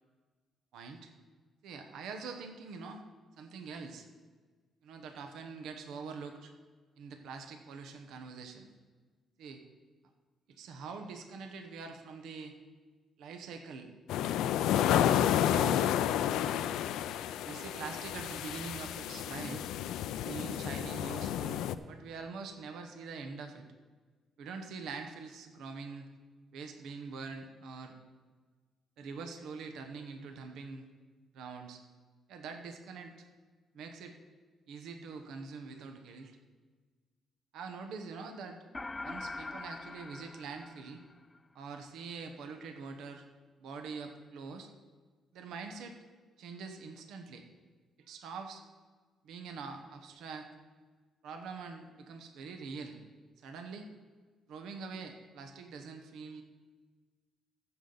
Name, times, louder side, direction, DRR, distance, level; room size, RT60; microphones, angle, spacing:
voice 1, 0.7-1.1 1.6-3.0 3.4-4.1 4.8-6.5 7.0-8.7 9.4-9.6 10.5-12.6 13.2-13.9 14.7-15.9 17.4-19.7 20.2-23.6 24.4-26.1 26.5-27.9 29.0-30.9 31.3-31.8 32.3-33.3 33.7-34.2 34.7-36.4 37.5-38.6 39.0-41.0 41.5-43.3 43.6-44.7 45.3-46.0 46.4-47.4 48.0-48.6 49.2-50.5 51.2-53.0 53.4-53.9 54.5-56.4, right 4 dB, 80° right, 5 dB, 1.0 m, -44 dB
sound 1, 14.1-21.7, left 10 dB, 90° left, 0.4 m, -31 dB
sound 2, 38.7-41.4, left 3 dB, 20° left, 0.3 m, -43 dB
15.0 x 7.1 x 4.0 m, 1.4 s
cardioid pair, 90°, 0 cm